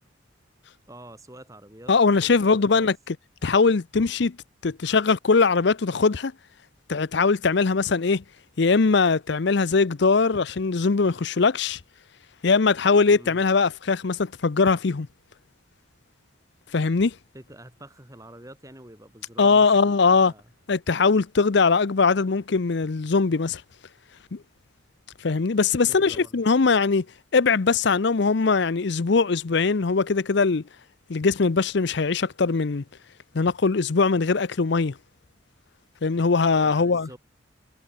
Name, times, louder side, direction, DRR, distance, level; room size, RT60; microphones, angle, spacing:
voice 1, 0.9-1.9 2.2-2.9 13.1-13.4 17.3-20.4 25.9-26.3 36.6-37.2, right 1 dB, 15° right, 6.3 m, -46 dB
voice 2, 1.9-3.2 3.4-4.4 4.6-6.3 6.9-8.2 8.6-11.8 12.4-15.1 16.7-17.1 19.4-20.3 20.7-23.6 24.3-24.4 25.2-27.0 27.3-30.6 31.1-32.8 33.3-34.9 36.0-37.1, left 4 dB, 55° left, 0.6 m, -21 dB
head